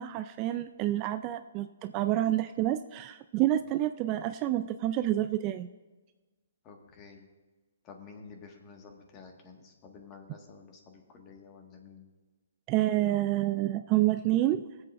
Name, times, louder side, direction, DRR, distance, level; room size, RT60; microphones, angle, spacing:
voice 1, 0.0-5.7 12.7-14.7, right 14 dB, 30° right, 11 dB, 0.3 m, -28 dB
voice 2, 6.6-7.3 7.8-12.1, left 5 dB, 25° left, 2 dB, 1.7 m, -51 dB
21.0 x 7.8 x 2.6 m, 1.3 s
hypercardioid pair, 145°, 0 cm